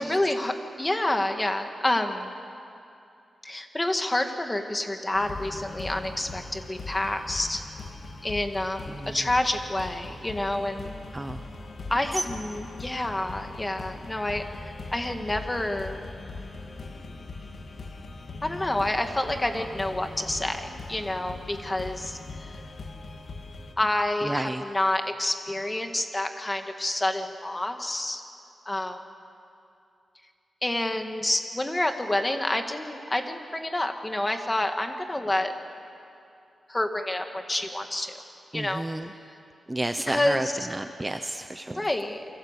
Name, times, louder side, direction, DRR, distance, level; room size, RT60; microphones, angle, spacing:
voice 1, 0.0-2.3 3.4-7.6 8.2-10.9 11.9-14.4 14.9-16.0 18.4-22.2 23.8-28.2 28.7-29.0 30.6-35.5 36.7-38.1 38.5-38.8 40.1-40.5 41.7-42.2, left 1 dB, 15° left, 5 dB, 2.0 m, -28 dB
sound 1, 5.1-23.7, left 3 dB, 60° left, 3.0 m, -40 dB
voice 2, 11.1-11.4 12.2-12.3 24.2-24.6 38.5-39.1 39.7-41.8, right 1 dB, 15° right, 7 dB, 0.8 m, -31 dB
29.0 x 24.5 x 8.3 m, 2.6 s
wide cardioid pair, 135°, 0 cm